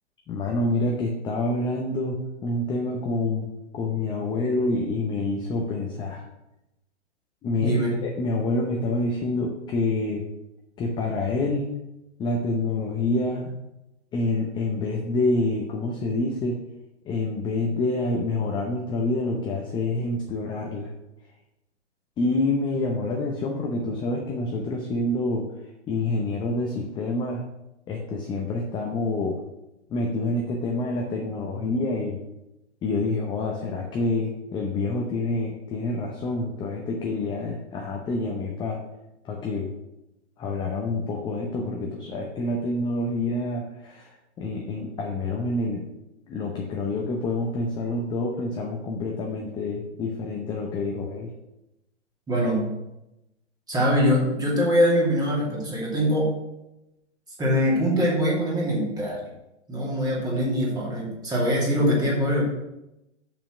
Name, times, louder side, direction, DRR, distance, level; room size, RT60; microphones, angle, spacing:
voice 1, 0.3-3.5 3.7-6.2 7.4-10.2 10.8-11.6 12.2-13.5 14.1-16.6 17.1-20.9 22.2-25.5 25.9-27.4 27.9-29.4 29.9-32.2 32.8-38.8 39.2-39.7 40.4-45.9 46.3-51.3, left 2 dB, 15° left, 1 dB, 0.7 m, -27 dB
voice 2, 7.6-8.0 52.3-52.7 53.7-56.3 57.4-59.3 59.7-62.4, equal, 10° right, -4 dB, 2.6 m, -23 dB
7.0 x 5.8 x 6.0 m, 0.92 s
figure-of-eight pair, 125°, 35 cm